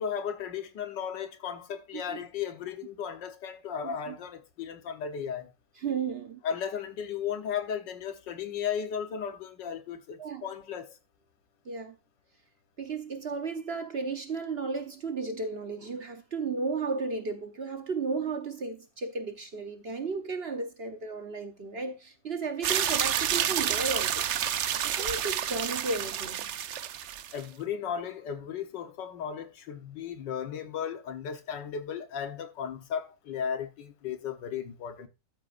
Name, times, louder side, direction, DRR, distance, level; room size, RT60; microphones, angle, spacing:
voice 1, 0.0-5.5 6.4-10.9 27.3-35.1, left 7 dB, 80° left, 1.8 m, -35 dB
voice 2, 3.8-4.2 5.8-6.4 10.2-10.4 11.6-12.0 12.8-24.2 24.8-26.5, right 4 dB, 45° right, 0.9 m, -34 dB
sound 1, 22.6-27.4, right 10 dB, 70° right, 0.7 m, -29 dB
12.5 x 8.0 x 2.5 m
omnidirectional pair, 1.9 m